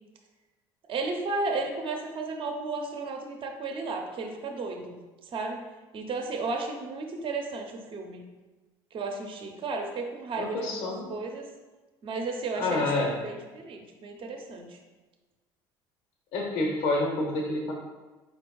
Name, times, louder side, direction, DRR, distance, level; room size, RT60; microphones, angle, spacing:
voice 1, 0.9-5.6 5.9-8.2 8.9-11.5 12.0-14.8, right 3 dB, 45° right, 3 dB, 0.7 m, -34 dB
voice 2, 10.4-11.1 12.5-13.1 16.3-17.7, left 2 dB, 70° left, 0 dB, 0.8 m, -28 dB
5.1 x 3.9 x 2.3 m, 1.2 s
hypercardioid pair, 70°, 12 cm